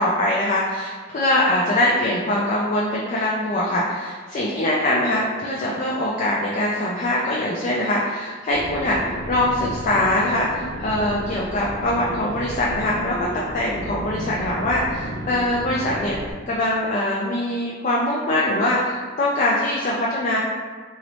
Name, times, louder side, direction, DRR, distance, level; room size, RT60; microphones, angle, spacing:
voice 1, 0.0-16.2 16.5-20.4, left 1 dB, 40° left, -4 dB, 0.4 m, -23 dB
sound 1, 8.5-16.3, equal, 85° right, 1.0 m, -33 dB
2.9 x 2.8 x 3.0 m, 1.5 s
head